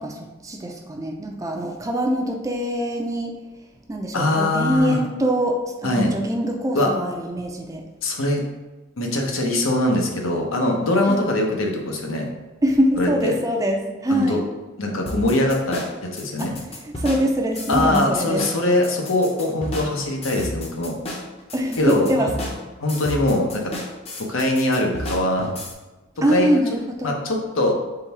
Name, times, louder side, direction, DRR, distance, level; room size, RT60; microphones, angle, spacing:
voice 1, 0.0-3.3 3.9-7.8 11.0-11.3 12.6-14.4 16.4-18.4 21.5-22.3 26.2-27.2, equal, 15° right, 2 dB, 0.4 m, -24 dB
voice 2, 4.1-5.0 5.8-6.1 6.7-6.9 8.0-8.4 9.0-12.3 13.0-13.3 14.1-14.4 14.8-16.5 17.7-21.0 21.8-22.3 22.8-23.7 24.3-25.5 26.3-26.6 27.0-27.8, left 1 dB, 80° left, 1 dB, 0.8 m, -22 dB
sound 1, 15.1-25.7, left 1 dB, 30° left, 0.6 m, -33 dB
3.8 x 3.4 x 4.1 m, 1.1 s
head